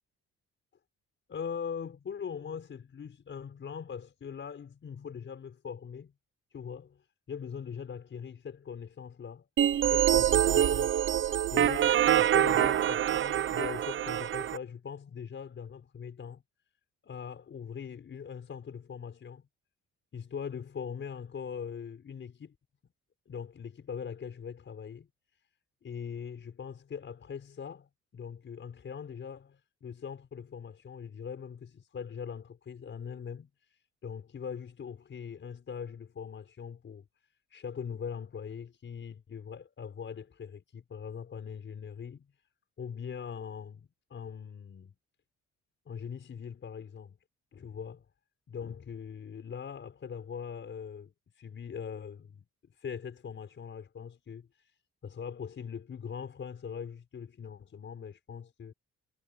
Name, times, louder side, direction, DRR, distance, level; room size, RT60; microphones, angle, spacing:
voice 1, 1.3-6.1 6.5-9.5 9.9-10.9 11.5-16.4 17.0-19.5 20.1-22.6 23.3-25.1 25.8-37.1 37.5-42.3 42.8-44.9 45.9-47.2 47.5-48.1 48.5-52.5 52.7-54.7 55.0-58.7, left 7 dB, 40° left, 5.5 m, -41 dB
sound 1, 9.6-14.6, right 10 dB, 45° right, 0.6 m, -25 dB
cardioid pair, 140°, 29 cm